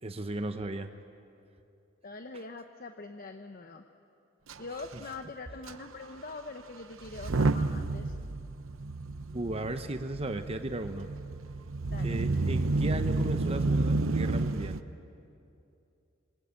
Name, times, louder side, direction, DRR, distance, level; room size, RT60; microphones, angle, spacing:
voice 1, 0.0-0.9 9.3-11.1 12.0-14.8, right 1 dB, 30° right, 8 dB, 0.9 m, -36 dB
voice 2, 2.0-3.8 4.6-8.2 11.8-12.2, left 3 dB, 45° left, 7 dB, 0.9 m, -43 dB
Motor vehicle (road) / Engine starting / Accelerating revving vroom, 4.5-4.6 4.8-5.0 5.7-5.8 7.0-14.8, right 3 dB, 85° right, 0.8 m, -30 dB
26.5 x 22.5 x 8.8 m, 2.7 s
head